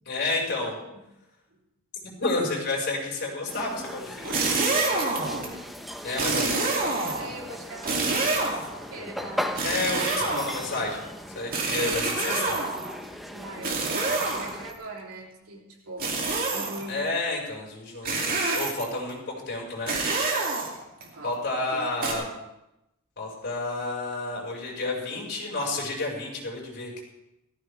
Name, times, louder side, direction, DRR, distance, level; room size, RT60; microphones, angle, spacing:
voice 1, 0.1-0.7 2.2-4.5 6.0-6.5 9.6-11.0 11.3-12.6 16.9-20.0 21.2-22.3 23.2-27.0, left 2 dB, 50° left, -3 dB, 5.5 m, -30 dB
voice 2, 0.6-1.0 1.5-1.6 5.3-9.5 13.3-17.0 20.9-21.3 21.7-21.9, right 1 dB, 75° right, -2 dB, 3.5 m, -42 dB
sound 1, 3.5-14.7, equal, ahead, 0.9 m, -38 dB
sound 2, 4.2-5.5 6.2-7.3 7.8-8.8 9.6-10.8 11.5-12.9 13.6-14.7 16.0-16.9 18.0-19.0 19.9-21.0 22.0-22.1, right 3 dB, 45° right, 2.8 m, -27 dB
17.5 x 15.0 x 3.5 m, 0.90 s
head